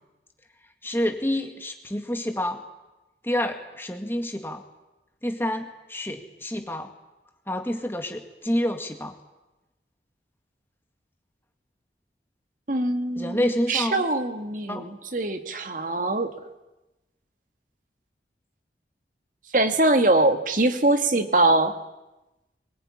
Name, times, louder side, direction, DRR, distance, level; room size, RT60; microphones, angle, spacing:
voice 1, 0.8-2.6 3.2-4.6 5.2-6.9 7.5-9.1 13.2-14.0 14.7-14.9, left 1 dB, 10° left, 5 dB, 2.0 m, -28 dB
voice 2, 12.7-13.4 13.7-16.3 19.5-21.7, right 2 dB, 45° right, 7 dB, 1.8 m, -22 dB
23.0 x 21.0 x 9.9 m, 1.0 s
head